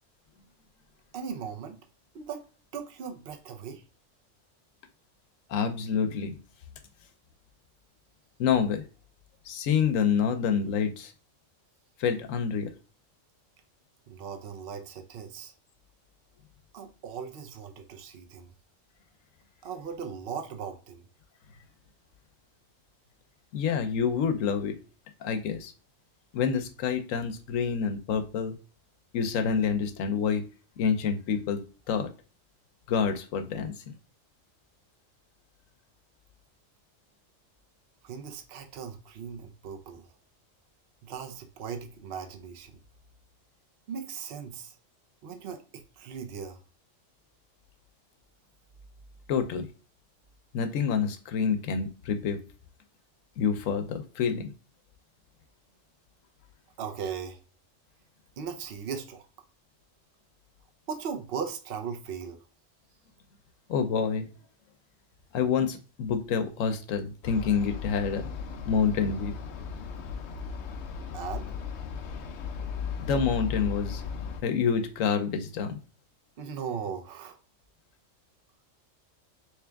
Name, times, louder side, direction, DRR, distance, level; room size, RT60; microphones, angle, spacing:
voice 1, 1.1-1.8 2.1-2.4 2.7-3.8 14.1-15.5 16.7-18.5 19.6-21.1 38.0-40.1 41.0-42.7 43.9-44.8 45.2-46.6 56.8-57.4 58.4-59.3 60.9-62.4 71.1-71.5 76.4-77.4, right 6 dB, 55° right, 0.8 m, -38 dB
voice 2, 5.5-6.4 8.4-8.8 9.5-11.1 12.0-12.7 23.5-24.8 25.2-25.7 26.3-28.6 29.1-30.4 30.8-32.1 32.9-33.7 49.3-49.7 50.5-52.4 53.4-54.5 63.7-64.3 65.3-68.3 68.7-69.4 73.0-74.0 74.4-75.8, left 6 dB, 90° left, 1.0 m, -27 dB
Bergen Bird Perspective, 67.2-74.4, left 6 dB, 65° left, 0.8 m, -36 dB
3.4 x 3.2 x 3.4 m
omnidirectional pair, 1.3 m